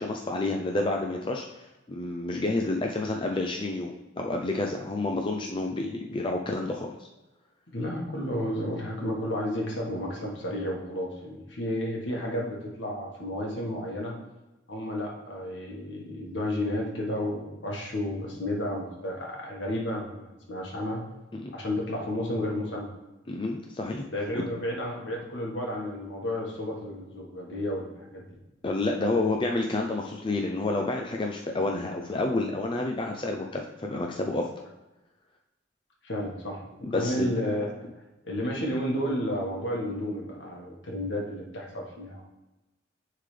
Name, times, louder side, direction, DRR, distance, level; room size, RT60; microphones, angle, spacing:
voice 1, 0.0-6.9 21.3-21.5 23.3-24.0 24.3-24.4 28.6-34.5 36.8-37.3, left 2 dB, 25° left, 1 dB, 0.4 m, -29 dB
voice 2, 7.7-14.1 14.7-21.0 21.5-22.9 24.1-28.2 36.0-36.6 36.9-37.7 38.2-42.2, left 1 dB, 70° left, -1 dB, 1.5 m, -32 dB
9.7 x 3.7 x 3.4 m, 1.0 s
head